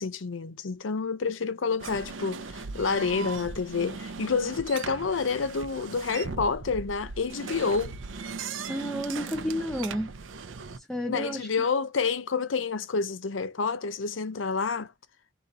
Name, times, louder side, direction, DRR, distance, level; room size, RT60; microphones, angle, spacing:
voice 1, 0.0-7.9 11.1-14.9, left 5 dB, 80° left, 0.6 m, -28 dB
sound 1, 1.8-10.8, right 4 dB, 80° right, 0.6 m, -38 dB
voice 2, 8.7-10.1 10.8-11.5, equal, 5° left, 0.5 m, -31 dB
3.8 x 2.9 x 4.0 m
head